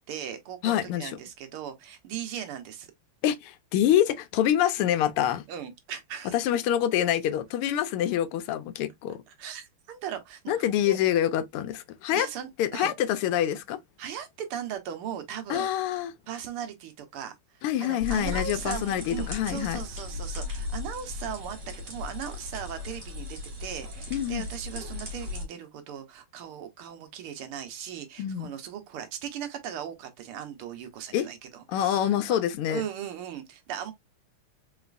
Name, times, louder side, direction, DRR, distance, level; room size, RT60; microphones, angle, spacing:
voice 1, 0.1-2.9 5.5-6.3 9.3-11.0 12.1-12.9 14.0-15.7 16.3-32.4 32.7-33.9, right 9 dB, 80° right, 1.8 m, -38 dB
voice 2, 0.6-1.1 3.2-5.4 6.3-9.2 10.5-12.3 12.6-13.8 15.5-16.1 17.6-19.8 24.1-24.4 28.2-28.5 31.1-31.3 31.7-32.8, left 11 dB, 90° left, 1.6 m, -26 dB
sound 1, 18.0-25.4, left 3 dB, 35° right, 1.8 m, -36 dB
4.1 x 3.9 x 2.4 m
omnidirectional pair, 2.4 m